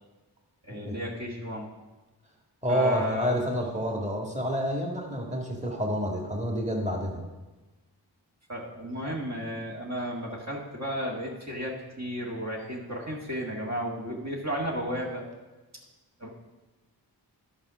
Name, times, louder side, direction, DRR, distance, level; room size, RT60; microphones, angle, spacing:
voice 1, 0.6-1.7 2.7-3.3 8.5-15.3 16.2-16.3, equal, 40° right, -3 dB, 1.9 m, -33 dB
voice 2, 2.6-7.2, equal, 15° right, 0 dB, 2.1 m, -28 dB
11.0 x 5.2 x 6.3 m, 1.2 s
cardioid pair, 55°, 40 cm